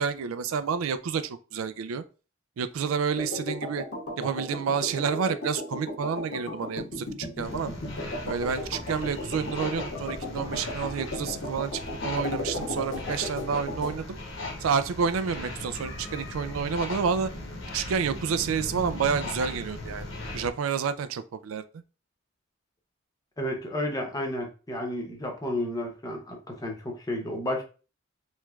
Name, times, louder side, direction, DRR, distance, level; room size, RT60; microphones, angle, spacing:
voice 1, 0.0-2.0 2.6-3.8 4.2-7.7 8.2-14.2 14.6-17.3 17.7-20.1 20.3-21.8, right 6 dB, 85° right, 0.4 m, -29 dB
sound 1, 3.2-14.0, left 2 dB, 90° left, 1.3 m, -36 dB
sound 2, 7.4-20.5, left 2 dB, 65° left, 0.9 m, -38 dB
voice 2, 23.4-27.6, left 1 dB, 20° left, 0.8 m, -32 dB
3.2 x 3.1 x 2.3 m
head